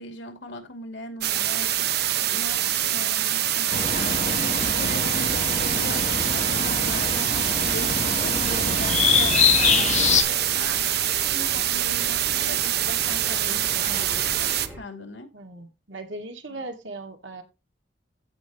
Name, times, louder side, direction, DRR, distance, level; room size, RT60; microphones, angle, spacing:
voice 1, 0.0-1.9 2.3-15.3 16.5-16.6, left 2 dB, 90° left, 2.6 m, -39 dB
sound 1, 1.2-14.7, right 12 dB, 60° right, 0.8 m, -25 dB
sound 2, 3.7-10.2, left 6 dB, 40° left, 1.3 m, -24 dB
sound 3, 7.5-14.8, equal, 10° right, 3.4 m, -41 dB
voice 2, 15.3-17.4, right 2 dB, 80° right, 2.3 m, -38 dB
15.5 x 5.3 x 3.1 m
head